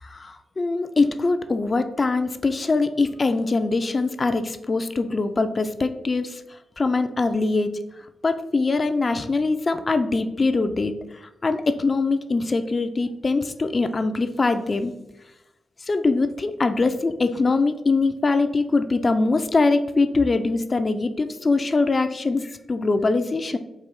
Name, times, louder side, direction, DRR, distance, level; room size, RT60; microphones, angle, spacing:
voice 1, 0.0-7.8 8.2-14.9 15.8-23.6, left 3 dB, 45° left, 9 dB, 0.4 m, -23 dB
4.4 x 2.4 x 3.4 m, 0.94 s
supercardioid pair, 50°, 0 cm